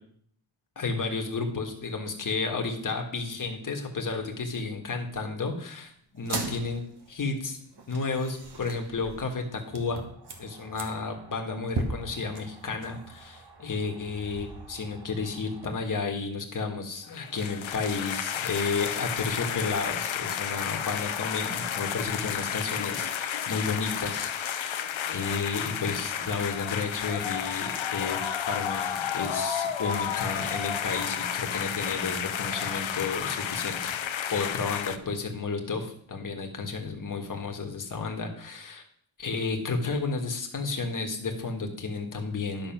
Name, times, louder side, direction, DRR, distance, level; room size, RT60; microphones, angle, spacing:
voice 1, 0.7-6.8 7.1-7.6 7.9-10.1 10.4-24.8 25.1-28.2 28.5-33.9 34.3-35.8 36.1-38.8 39.2-42.7, left 4 dB, 40° left, 3 dB, 1.6 m, -32 dB
sound 1, 6.2-15.7, right 2 dB, 50° right, 1.5 m, -40 dB
sound 2, 17.1-35.0, left 9 dB, 70° left, 0.8 m, -32 dB
11.0 x 6.3 x 5.9 m, 0.63 s
wide cardioid pair, 175°, 48 cm